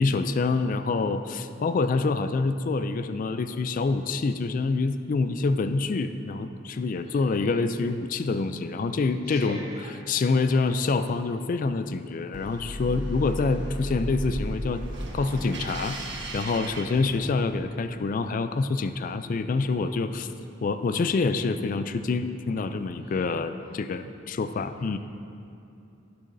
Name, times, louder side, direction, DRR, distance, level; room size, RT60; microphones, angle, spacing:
voice 1, 0.0-9.6 10.1-14.8 15.1-20.3 20.6-25.0, left 3 dB, 45° left, 10 dB, 0.3 m, -26 dB
voice 2, 7.0-7.7 9.2-10.1 10.5-10.7 23.0-23.4, equal, 30° right, -8 dB, 2.2 m, -46 dB
sound 1, 12.3-17.6, equal, 60° right, 1.3 m, -35 dB
17.5 x 6.9 x 2.6 m, 2.7 s
head